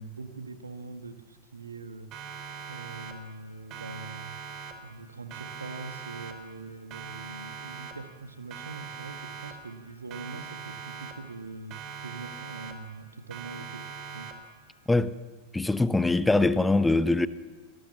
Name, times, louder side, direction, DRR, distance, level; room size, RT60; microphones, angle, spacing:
voice 1, 0.0-2.4 2.7-4.3 4.8-14.3, right 3 dB, 75° right, 1.7 m, -43 dB
Siren, 2.1-3.4 3.7-5.0 5.3-6.6 6.9-8.2 8.5-9.8 10.1-11.4 11.7-13.0 13.3-14.6, right 6 dB, 35° right, 3.4 m, -42 dB
voice 2, 15.5-17.3, left 2 dB, 5° left, 0.8 m, -23 dB
25.5 x 19.0 x 7.1 m
figure-of-eight pair, 90°, 0 cm